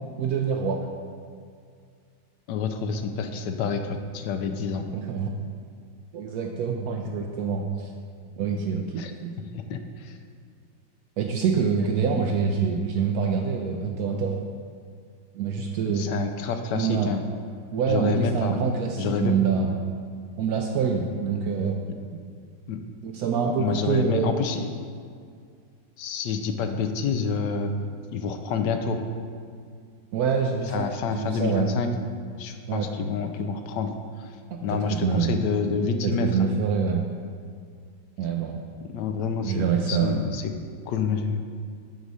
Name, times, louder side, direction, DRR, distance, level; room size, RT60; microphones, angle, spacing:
voice 1, 0.2-0.8 4.9-5.3 6.1-7.9 8.4-9.3 11.2-14.4 15.3-16.1 16.7-17.1 17.7-19.7 20.4-21.8 22.1-22.2 23.0-24.4 30.1-31.7 32.7-32.9 34.7-35.3 36.0-37.0 38.2-38.6 39.4-40.2, right 6 dB, 90° right, 2 dB, 0.8 m, -26 dB
voice 2, 2.5-4.9 9.0-9.1 9.5-10.1 15.9-17.2 17.9-18.5 19.0-19.3 22.7-22.8 23.4-24.7 26.0-27.7 28.1-29.0 30.7-31.9 32.4-33.9 34.6-36.3 38.9-40.4 40.9-41.4, left 5 dB, 70° left, 6 dB, 1.1 m, -28 dB
11.0 x 4.1 x 4.8 m, 2.2 s
omnidirectional pair, 2.2 m